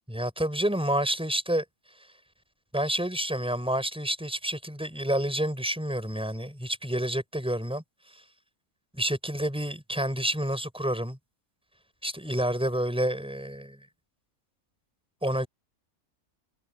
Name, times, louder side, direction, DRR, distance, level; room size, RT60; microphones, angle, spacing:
voice 1, 0.1-1.6 2.7-7.8 8.9-11.2 12.0-13.8 15.2-15.5, right 1 dB, 5° right, 5.9 m, -29 dB
omnidirectional pair, 1.5 m